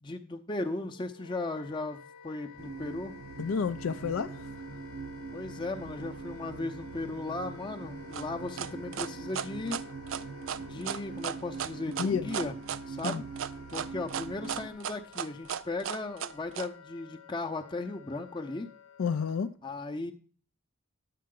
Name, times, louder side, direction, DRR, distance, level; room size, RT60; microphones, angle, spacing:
voice 1, 0.0-3.2 5.3-9.8 10.6-12.5 12.9-13.3 13.7-18.7 19.6-20.1, left 2 dB, 20° left, 0.6 m, -36 dB
Wind instrument woodwind instrument, 0.7-19.5, left 6 dB, 90° left, 0.9 m, -52 dB
sound 1, 2.6-14.7, right 4 dB, 85° right, 0.8 m, -43 dB
voice 2, 3.4-4.5 12.0-12.3 13.0-13.2 19.0-19.5, left 6 dB, 65° left, 0.4 m, -30 dB
sound 2, 8.1-16.7, right 8 dB, 60° right, 0.4 m, -35 dB
10.5 x 7.6 x 3.7 m
head